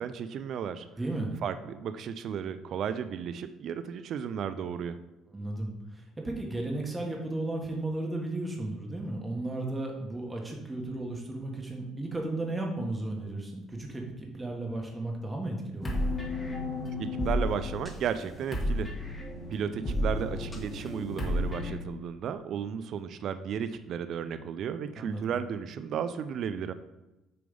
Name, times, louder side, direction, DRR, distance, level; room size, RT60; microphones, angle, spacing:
voice 1, 0.0-0.9 1.4-5.0 17.2-18.9 19.5-26.7, right 8 dB, 55° right, 11 dB, 0.3 m, -34 dB
voice 2, 1.0-1.3 5.3-16.0 25.0-25.3, right 2 dB, 15° right, 0 dB, 1.2 m, -34 dB
sound 1, 15.8-21.7, left 1 dB, 15° left, 1.3 m, -32 dB
6.7 x 3.4 x 5.2 m, 1.0 s
cardioid pair, 115°, 0 cm